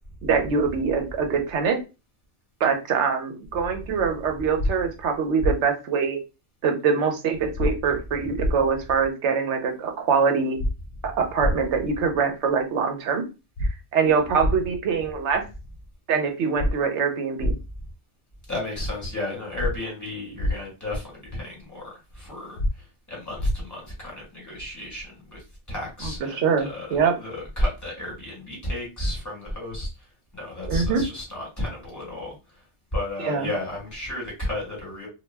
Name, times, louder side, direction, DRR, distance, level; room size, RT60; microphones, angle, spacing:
voice 1, 0.2-1.8 2.6-6.2 6.6-10.6 11.0-13.2 13.9-15.4 16.1-17.6 26.3-27.1 30.7-31.0 33.2-33.5, right 5 dB, 80° right, 1.0 m, -24 dB
sound 1, 4.6-4.7 5.4-5.5 7.6-7.7 8.4-8.5 10.6-10.7 11.4-11.5 13.6-13.7 14.4-14.5 16.6-16.7 17.4-17.5 19.6-19.7 20.4-20.5 22.6-22.7 23.4-23.5, left 1 dB, 65° left, 0.7 m, -23 dB
voice 2, 18.5-29.9 30.3-32.3 32.9-35.1, left 1 dB, 15° left, 1.3 m, -32 dB
2.3 x 2.2 x 3.2 m
omnidirectional pair, 1.2 m